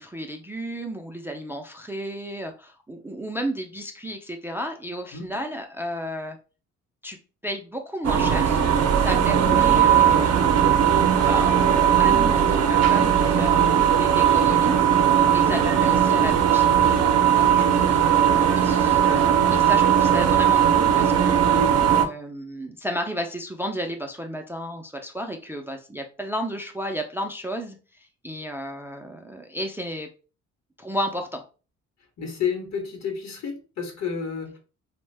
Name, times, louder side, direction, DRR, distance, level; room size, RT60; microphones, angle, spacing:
voice 1, 0.0-6.4 7.0-7.2 7.4-8.6 9.0-10.6 11.2-14.7 15.3-21.4 21.9-30.1 30.8-31.4, equal, 10° right, 0.3 m, -33 dB
sound 1, 8.0-22.1, right 9 dB, 55° right, 0.5 m, -18 dB
voice 2, 32.2-34.6, left 6 dB, 60° left, 1.0 m, -31 dB
2.5 x 2.1 x 3.2 m
cardioid pair, 90°, 30 cm